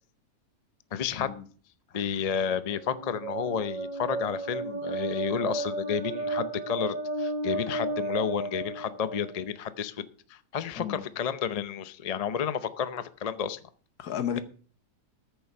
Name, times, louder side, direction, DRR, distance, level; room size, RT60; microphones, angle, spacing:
voice 1, 0.9-1.3 1.9-13.6, left 7 dB, 55° left, 0.4 m, -31 dB
sound 1, 2.6-9.4, right 2 dB, 30° right, 1.3 m, -33 dB
voice 2, 14.0-14.4, left 9 dB, 70° left, 1.6 m, -32 dB
13.5 x 6.9 x 5.5 m
omnidirectional pair, 1.7 m